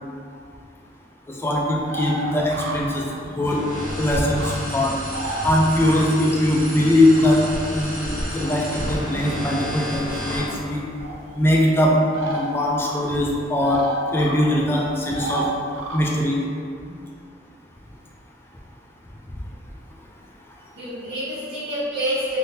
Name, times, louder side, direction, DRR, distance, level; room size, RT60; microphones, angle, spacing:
voice 1, 1.3-3.0 3.4-3.6 4.0-5.0 5.4-10.8 11.4-13.8 14.1-15.5 15.9-16.4, left 1 dB, 10° left, -2 dB, 0.3 m, -21 dB
sound 1, 1.9-4.5 5.0-6.3 6.7-7.6 8.4-9.0 10.2-10.5 11.0-11.2 12.1-12.5 12.8-13.0 13.3-14.4 15.1-16.0, right 2 dB, 90° right, 0.4 m, -32 dB
voice 2, 3.2-3.6 16.8-17.0 20.7-22.4, equal, 75° right, -16 dB, 1.1 m, -28 dB
sound 2, 3.4-10.5, equal, 25° right, 1.4 m, -31 dB
3.4 x 2.6 x 2.7 m, 2.4 s
head